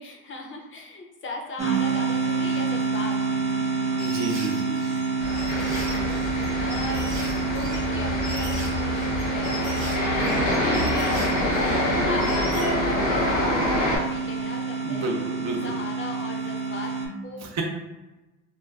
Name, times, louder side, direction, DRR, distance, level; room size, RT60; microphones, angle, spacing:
voice 1, 0.0-3.7 5.4-7.1 7.4-15.1 15.5-17.6, left 2 dB, 40° left, 1 dB, 0.5 m, -38 dB
sound 1, 1.6-17.1, right 4 dB, 20° right, 0.5 m, -28 dB
voice 2, 3.8-4.8 14.8-15.6 17.4-17.6, right 3 dB, 65° right, 1 dB, 0.6 m, -31 dB
sound 2, 4.0-12.7, right 1 dB, 85° right, 0.9 m, -40 dB
sound 3, 5.2-14.0, left 1 dB, 85° left, 1.1 m, -26 dB
2.4 x 2.3 x 2.3 m, 1.1 s
cardioid pair, 90°, 30 cm